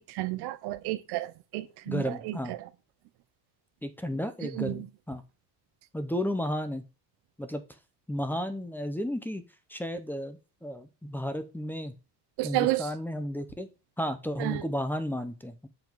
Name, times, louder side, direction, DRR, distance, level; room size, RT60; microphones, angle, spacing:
voice 1, 0.0-2.4 4.4-4.9 12.4-12.9 14.4-14.6, right 17 dB, 75° right, 0.7 m, -31 dB
voice 2, 1.9-2.5 3.8-5.2 5.9-6.8 7.4-7.6 8.1-12.0 12.4-13.7 14.0-15.7, equal, 5° left, 0.7 m, -33 dB
7.4 x 3.8 x 4.6 m
cardioid pair, 135°, 40 cm